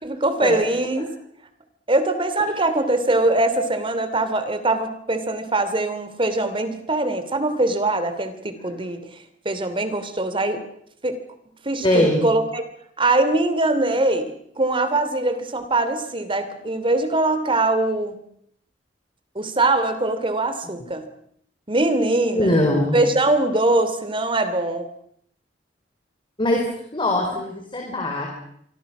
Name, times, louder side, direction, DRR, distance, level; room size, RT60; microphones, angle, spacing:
voice 1, 0.0-1.1 1.9-9.1 9.4-10.6 11.0-11.2 11.6-12.6 13.0-18.1 19.3-21.1 21.7-22.5 22.9-24.9, right 2 dB, 30° right, 10 dB, 2.9 m, -22 dB
voice 2, 11.8-12.2 22.3-23.0 26.4-28.3, left 1 dB, 30° left, 1 dB, 4.5 m, -21 dB
28.0 x 24.0 x 6.1 m, 0.68 s
head